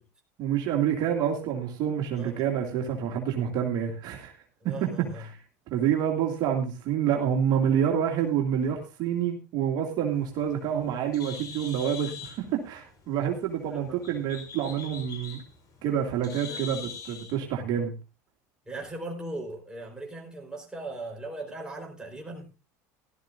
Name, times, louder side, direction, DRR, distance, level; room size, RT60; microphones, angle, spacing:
voice 1, 0.4-4.3 4.6-5.4 5.7-15.4 15.8-17.9, right 9 dB, 55° right, 2.5 m, -28 dB
voice 2, 2.1-2.5 4.6-5.3 13.7-14.0 16.4-16.7 18.7-22.5, right 2 dB, 10° right, 4.4 m, -39 dB
Bird, 10.1-17.4, left 6 dB, 45° left, 4.9 m, -43 dB
17.0 x 12.5 x 2.6 m
supercardioid pair, 100°, 9 cm